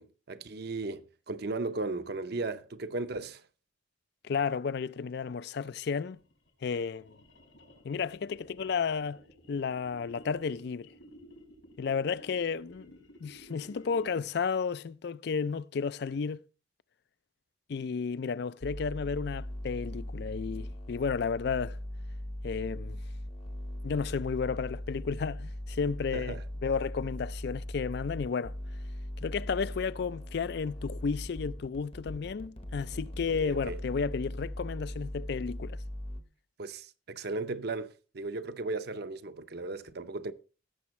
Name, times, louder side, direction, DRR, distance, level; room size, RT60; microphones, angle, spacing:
voice 1, 0.0-3.4 26.1-26.4 33.4-33.8 36.6-40.3, right 3 dB, 55° right, 0.7 m, -36 dB
voice 2, 4.2-6.2 6.6-7.2 7.8-9.2 9.5-10.9 11.8-16.4 17.7-21.8 22.4-23.0 23.8-28.5 29.2-35.8, left 5 dB, 60° left, 0.4 m, -32 dB
sound 1, 5.7-14.4, equal, 90° left, 5.1 m, -55 dB
sound 2, 18.6-36.2, left 1 dB, 30° left, 0.8 m, -39 dB
16.5 x 7.1 x 3.1 m
head